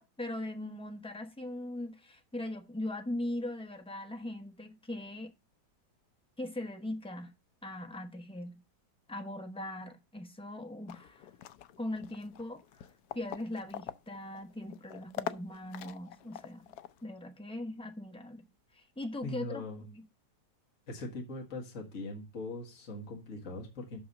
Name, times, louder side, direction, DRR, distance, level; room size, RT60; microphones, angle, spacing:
voice 1, 0.0-5.3 6.4-7.3 7.6-8.5 9.1-11.3 11.8-12.6 13.1-16.6 17.0-18.4 18.7-20.0, left 1 dB, 5° left, 0.7 m, -40 dB
sound 1, 10.9-17.0, left 11 dB, 70° left, 1.0 m, -44 dB
voice 2, 19.2-19.8 20.9-24.0, left 2 dB, 45° left, 2.1 m, -41 dB
6.2 x 5.7 x 6.5 m
omnidirectional pair, 1.9 m